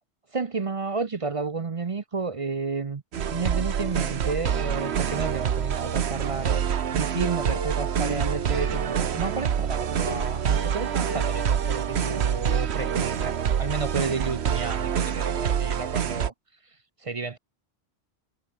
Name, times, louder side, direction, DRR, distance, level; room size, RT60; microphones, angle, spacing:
voice 1, 0.3-6.6 6.9-16.3 17.0-17.4, right 4 dB, 35° right, 0.7 m, -31 dB
sound 1, 3.1-16.3, right 8 dB, 80° right, 1.2 m, -26 dB
Plucked string instrument, 7.5-9.4 10.1-12.9 13.2-13.3 13.6-13.7, right 1 dB, 20° right, 3.9 m, -38 dB
omnidirectional pair, 1.1 m